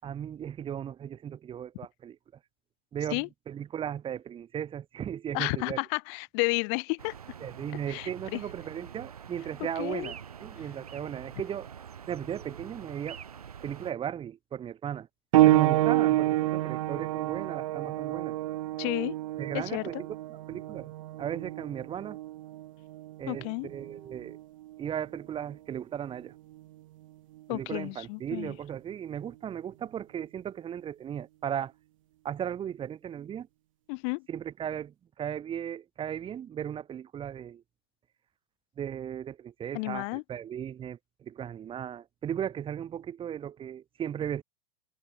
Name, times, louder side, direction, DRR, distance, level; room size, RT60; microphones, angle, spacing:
voice 1, 0.0-2.2 2.9-5.8 7.4-11.7 12.1-13.2 13.6-15.1 15.4-18.4 19.4-20.9 21.2-22.2 23.2-24.4 24.8-26.3 27.5-31.7 32.2-33.5 34.3-37.6 38.8-44.4, right 9 dB, 25° right, 4.6 m, -36 dB
voice 2, 5.3-7.1 7.9-8.4 9.8-10.1 18.8-19.2 19.5-20.0 23.3-23.7 27.5-28.5 33.9-34.2 39.7-40.2, left 37 dB, 50° left, 2.8 m, -32 dB
sound 1, 7.0-13.9, right 8 dB, 75° right, 4.1 m, -46 dB
sound 2, 15.3-25.6 26.5-26.6 27.4-27.5, right 16 dB, 60° right, 0.9 m, -28 dB
figure-of-eight pair, 90°, 19 cm